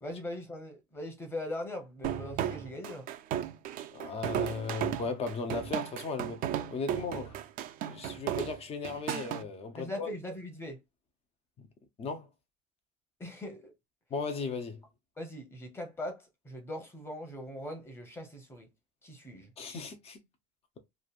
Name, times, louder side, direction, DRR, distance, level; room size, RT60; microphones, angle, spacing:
voice 1, 0.0-3.1 9.7-10.8 13.2-13.7 15.2-18.7 19.0-19.5, left 1 dB, 15° left, 1.0 m, -40 dB
sound 1, 2.0-9.4, right 10 dB, 55° right, 0.5 m, -34 dB
voice 2, 3.9-7.4 7.8-10.1 11.6-11.7 12.0-12.3 14.1-14.8 19.6-20.2, left 4 dB, 35° left, 0.8 m, -36 dB
3.2 x 2.5 x 2.4 m
cardioid pair, 150°, 18 cm